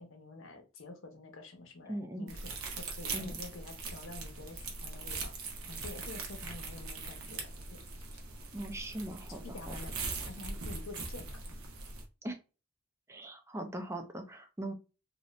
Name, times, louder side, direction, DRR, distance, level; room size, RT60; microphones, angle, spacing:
voice 1, 0.0-7.4 7.7-7.8 9.4-11.3, left 2 dB, 65° left, 5 dB, 0.8 m, -48 dB
voice 2, 1.9-2.3 3.1-3.3 8.5-9.8 12.2-12.4 13.1-14.7, right 1 dB, 15° right, 6 dB, 0.5 m, -40 dB
sound 1, 2.3-12.0, right 3 dB, 85° right, 0.8 m, -41 dB
2.7 x 2.5 x 3.1 m, 0.31 s
head